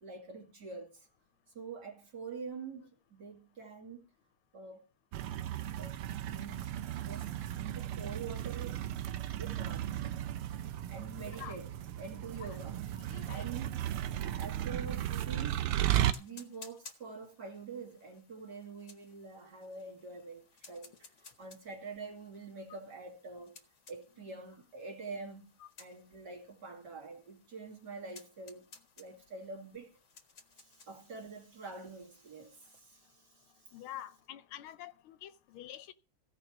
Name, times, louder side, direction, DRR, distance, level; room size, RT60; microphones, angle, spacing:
voice 1, 0.0-1.1 1.5-4.1 4.5-4.8 5.8-6.0 6.3-8.8 9.3-10.1 10.9-11.7 12.0-12.8 13.2-13.8 14.2-15.6 16.1-23.6 23.9-25.5 25.8-28.7 29.0-29.9 30.6-33.7, right 4 dB, 50° right, 3.0 m, -46 dB
sound 1, 5.1-16.1, right 12 dB, 90° right, 1.7 m, -35 dB
voice 2, 11.2-11.6 12.3-12.6 13.0-13.5 25.6-25.7 33.7-35.9, left 12 dB, 80° left, 1.6 m, -47 dB
sound 2, 14.7-32.8, left 4 dB, 35° left, 1.7 m, -59 dB
16.5 x 5.5 x 6.0 m
omnidirectional pair, 2.3 m